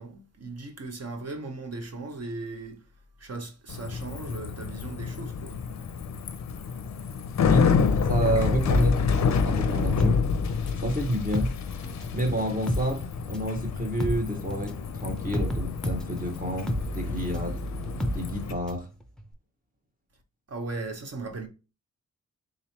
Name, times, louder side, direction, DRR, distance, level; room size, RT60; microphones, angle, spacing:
voice 1, 0.0-2.9 3.2-5.6 20.5-21.5, right 3 dB, 45° right, 0.9 m, -37 dB
Bicycle, 3.7-18.5, left 5 dB, 55° left, 0.5 m, -28 dB
voice 2, 8.0-9.0 9.5-10.2 10.8-11.5 12.1-17.6 18.1-18.9, right 1 dB, 25° right, 1.0 m, -29 dB
sound 1, 8.7-10.9 11.2-18.9 19.2-19.3, equal, ahead, 0.6 m, -31 dB
3.8 x 3.0 x 2.8 m
wide cardioid pair, 105°, 34 cm